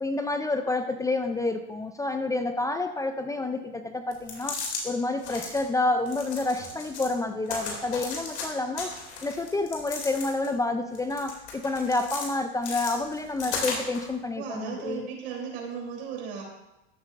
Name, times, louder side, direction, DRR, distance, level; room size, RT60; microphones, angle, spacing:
voice 1, 0.0-8.9 9.2-15.1, left 2 dB, 10° left, 8 dB, 0.4 m, -29 dB
sound 1, 4.1-4.8 5.2-5.6 6.1-7.1 7.5-8.5 8.8-10.5 11.0-12.3 12.6-14.1, left 4 dB, 90° left, 2.7 m, -35 dB
voice 2, 14.3-16.4, right 7 dB, 75° right, 0 dB, 3.4 m, -36 dB
13.5 x 8.0 x 2.5 m, 0.94 s
supercardioid pair, 115°, 33 cm